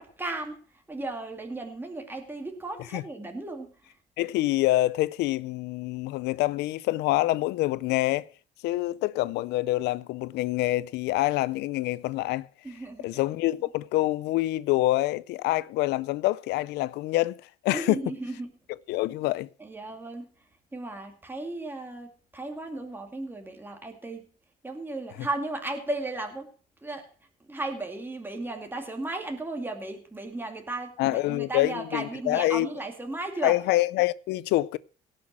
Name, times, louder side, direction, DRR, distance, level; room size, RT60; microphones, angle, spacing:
voice 1, 0.0-3.9 12.6-13.2 17.7-18.6 19.6-20.3 20.7-24.2 24.6-26.5 26.8-27.1 27.5-33.6, right 2 dB, 10° right, 2.3 m, -35 dB
voice 2, 4.2-8.3 8.6-12.5 13.0-17.4 17.6-18.0 18.9-19.5 31.0-32.7 33.4-34.8, left 17 dB, 85° left, 0.5 m, -26 dB
17.5 x 6.0 x 6.2 m
cardioid pair, 110°, 17 cm